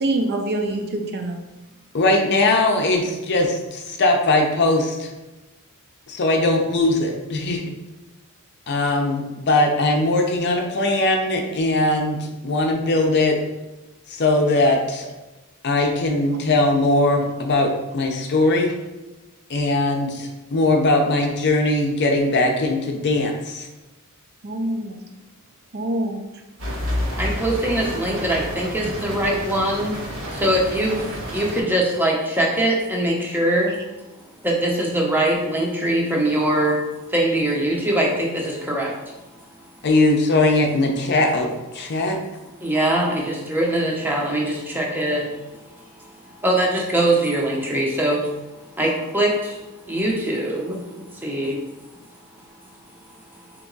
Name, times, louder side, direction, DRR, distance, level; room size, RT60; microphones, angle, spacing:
voice 1, 0.0-1.4 24.4-25.0 25.7-26.2, right 1 dB, 45° right, 4 dB, 0.5 m, -25 dB
voice 2, 1.9-5.1 6.1-7.6 8.7-13.4 14.1-15.1 15.6-18.7 19.5-23.7 39.8-42.2, left 2 dB, 50° left, 2 dB, 0.6 m, -20 dB
sound 1, 26.6-31.6, equal, 65° right, 1.4 m, -30 dB
voice 3, 27.2-29.9 30.4-31.0 31.3-33.8 34.4-36.8 37.1-38.9 42.6-45.3 46.0-46.1 46.4-48.3 48.8-49.6 49.9-51.6, right 1 dB, 10° right, -2 dB, 0.7 m, -22 dB
3.4 x 2.9 x 3.9 m, 1.1 s
head